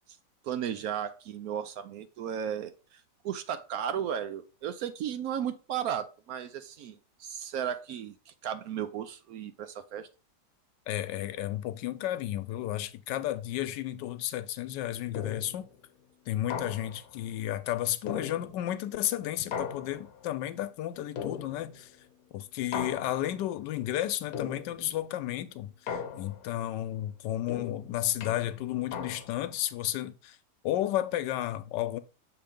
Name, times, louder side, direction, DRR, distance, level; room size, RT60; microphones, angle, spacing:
voice 1, 0.4-10.1, right 9 dB, 70° right, 0.9 m, -35 dB
voice 2, 10.9-15.7 16.3-21.9 22.3-30.4 30.6-32.0, left 13 dB, 85° left, 1.2 m, -32 dB
sound 1, 15.1-15.7 16.5-17.2 18.1-18.8 19.5-20.3 21.2-21.9 22.7-23.5 24.3-25.0 25.9-26.6 27.5-29.5, left 7 dB, 65° left, 1.1 m, -38 dB
6.9 x 3.0 x 5.0 m
omnidirectional pair, 1.8 m